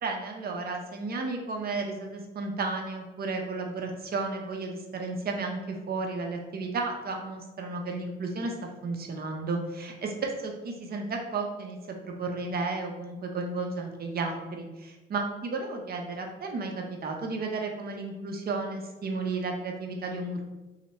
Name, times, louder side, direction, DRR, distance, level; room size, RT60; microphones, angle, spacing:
voice 1, 0.0-8.6 8.8-11.8 12.0-20.4, right 3 dB, 50° right, 2 dB, 0.8 m, -33 dB
3.0 x 2.9 x 4.3 m, 1.1 s
cardioid pair, 90°, 20 cm